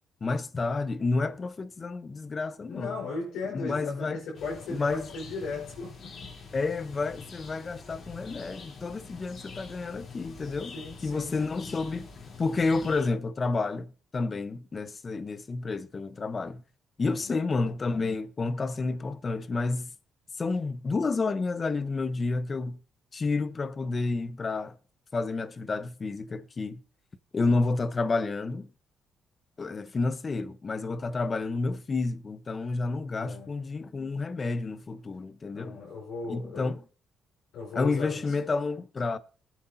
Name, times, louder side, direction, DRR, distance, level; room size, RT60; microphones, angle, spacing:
voice 1, 0.2-2.9 3.5-4.2 4.7-5.0 6.5-10.7 11.0-12.1 12.4-16.6 17.0-19.9 20.4-22.8 23.1-24.8 25.1-26.8 27.3-28.7 29.6-35.8 36.3-36.8 37.7-39.2, left 3 dB, 35° left, 1.0 m, -30 dB
voice 2, 2.7-6.3 10.7-11.4 17.0-17.4 33.1-33.6 35.5-36.8 37.5-38.3, left 4 dB, 85° left, 5.2 m, -37 dB
sound 1, 4.3-13.1, left 4 dB, 55° left, 3.7 m, -46 dB
19.0 x 9.1 x 2.8 m
cardioid pair, 90°, 0 cm